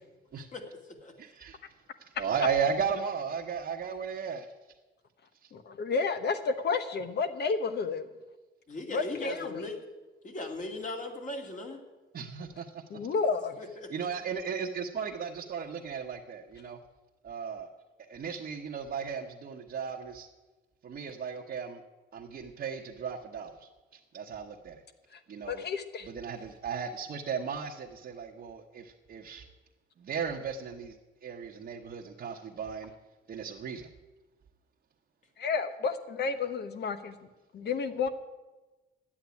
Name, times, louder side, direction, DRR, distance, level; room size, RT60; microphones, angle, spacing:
voice 1, 0.5-1.1 8.7-9.8 10.2-11.8 13.6-13.9, left 2 dB, 40° left, 2 dB, 2.6 m, -38 dB
voice 2, 1.2-1.6 2.1-4.5 12.1-12.8 13.9-16.8 17.2-17.7 18.1-20.3 20.8-21.8 22.1-23.6 24.1-24.8 25.3-25.6 26.0-29.5 30.0-30.9 31.2-32.9 33.3-33.9, right 6 dB, 50° right, -2 dB, 1.2 m, -35 dB
voice 3, 5.5-8.1 8.9-9.6 12.9-13.6 25.1-26.1 35.4-37.2 37.5-38.1, left 4 dB, 55° left, 10 dB, 1.2 m, -31 dB
11.0 x 8.7 x 9.5 m, 1.2 s
cardioid pair, 90°, 20 cm